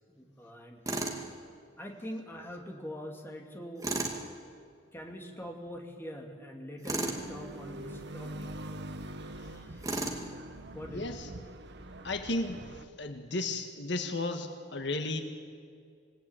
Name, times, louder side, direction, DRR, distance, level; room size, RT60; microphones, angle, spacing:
voice 1, 0.1-1.3 1.8-3.9 4.9-8.5 9.5-9.9 10.7-11.2, equal, 10° left, 2 dB, 2.7 m, -44 dB
Tools, 0.9-1.2 3.8-4.2 6.8-7.2 9.8-10.2, right 2 dB, 20° right, 2.4 m, -33 dB
sound 1, 7.0-12.8, right 1 dB, 65° right, 1.2 m, -44 dB
voice 2, 10.9-11.3 12.0-15.2, left 2 dB, 65° left, 6 dB, 1.8 m, -34 dB
27.0 x 18.5 x 9.1 m, 2.2 s
head